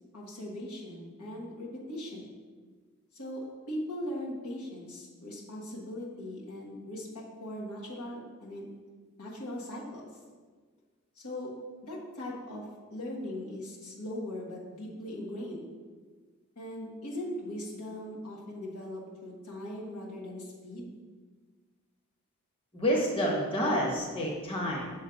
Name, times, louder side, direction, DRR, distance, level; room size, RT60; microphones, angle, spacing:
voice 1, 0.1-2.3 3.1-8.7 9.2-10.1 11.2-11.5 11.8-15.6 16.5-21.0, left 1 dB, 85° left, -3 dB, 1.4 m, -39 dB
voice 2, 22.7-24.9, equal, 25° left, -3 dB, 1.0 m, -28 dB
7.1 x 3.2 x 5.1 m, 1.5 s
head